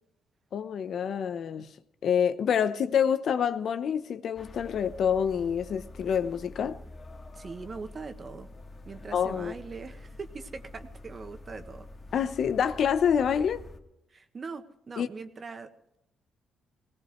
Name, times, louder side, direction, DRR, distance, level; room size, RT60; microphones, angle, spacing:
voice 1, 0.5-1.7 2.0-6.8 9.1-9.5 12.1-13.6 15.0-15.1, left 8 dB, 60° left, 0.9 m, -27 dB
sound 1, 4.4-13.8, left 2 dB, 35° left, 2.3 m, -47 dB
voice 2, 7.3-8.5 8.8-11.9 14.1-15.7, right 4 dB, 40° right, 1.6 m, -41 dB
19.0 x 19.0 x 3.2 m
cardioid pair, 90°, 0 cm